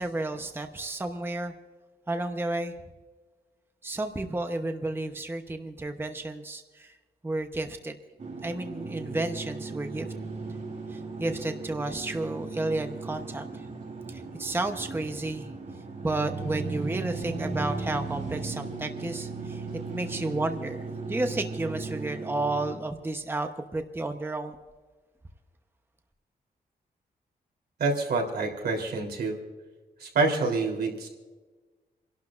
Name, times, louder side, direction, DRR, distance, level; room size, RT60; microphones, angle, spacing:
voice 1, 0.0-1.5 2.1-2.7 3.8-7.0 7.2-8.0 8.4-10.1 10.9-13.7 14.1-15.5 16.0-24.6, right 2 dB, 15° right, 6 dB, 0.9 m, -32 dB
sound 1, 8.2-22.7, right 3 dB, 45° right, 2.8 m, -36 dB
voice 2, 27.8-29.4 30.0-31.1, right 3 dB, 80° right, 2 dB, 3.5 m, -27 dB
29.5 x 12.0 x 2.5 m, 1.3 s
wide cardioid pair, 125°, 16 cm